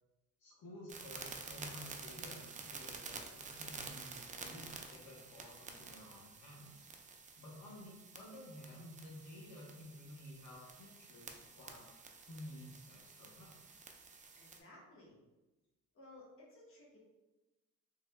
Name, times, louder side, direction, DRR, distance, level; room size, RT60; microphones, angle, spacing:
voice 1, 0.4-6.9 7.4-11.8 12.3-13.6, left 1 dB, 75° left, -3 dB, 1.0 m, -53 dB
sound 1, 0.9-14.6, right 4 dB, 25° right, 0.4 m, -50 dB
voice 2, 14.4-15.2 15.9-17.0, left 1 dB, 45° left, -4 dB, 1.2 m, -58 dB
3.4 x 3.2 x 2.2 m, 1.1 s
cardioid pair, 90°, 30 cm